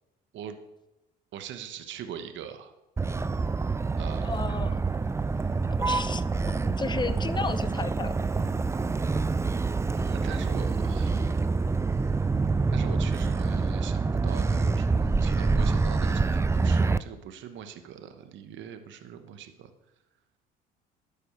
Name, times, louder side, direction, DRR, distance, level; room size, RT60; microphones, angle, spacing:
voice 1, 1.3-2.7 4.0-4.5 9.9-11.4 12.7-19.7, right 8 dB, 65° right, 8 dB, 1.0 m, -42 dB
Motor vehicle (road), 3.0-17.0, right 4 dB, 15° right, 0.4 m, -26 dB
voice 2, 4.2-4.8 5.8-6.2 6.7-8.1, left 4 dB, 20° left, 13 dB, 0.7 m, -33 dB
11.5 x 4.9 x 6.7 m, 0.97 s
hypercardioid pair, 65°, 21 cm